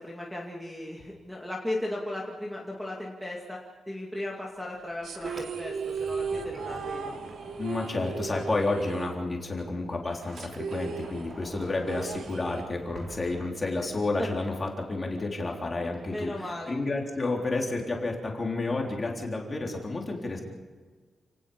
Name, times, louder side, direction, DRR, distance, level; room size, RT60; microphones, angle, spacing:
voice 1, 0.0-3.6 3.9-7.1 14.2-14.3 16.1-16.7, left 1 dB, ahead, -4 dB, 2.4 m, -36 dB
Sliding door, 4.8-9.1 9.4-14.1, right 2 dB, 40° right, 3.5 m, -46 dB
sound 1, 5.0-9.7 10.0-10.1 10.4-13.0, right 6 dB, 80° right, 1.9 m, -36 dB
voice 2, 7.6-20.4, left 2 dB, 20° left, 0 dB, 3.7 m, -30 dB
29.5 x 18.5 x 5.6 m, 1.4 s
wide cardioid pair, 180°, 0 cm